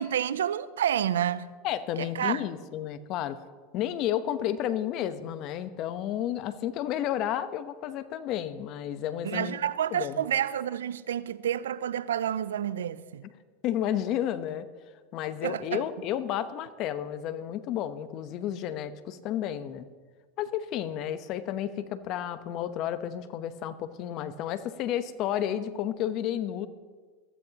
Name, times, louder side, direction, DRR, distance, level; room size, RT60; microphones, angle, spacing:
voice 1, 0.0-1.5 2.0-2.4 9.2-13.2 15.4-15.8, right 10 dB, 90° right, 0.5 m, -29 dB
voice 2, 1.6-3.4 3.7-10.2 13.6-14.7 15.1-19.8 20.4-26.7, left 11 dB, 55° left, 1.0 m, -32 dB
21.5 x 14.5 x 3.0 m
hypercardioid pair, 100°, 0 cm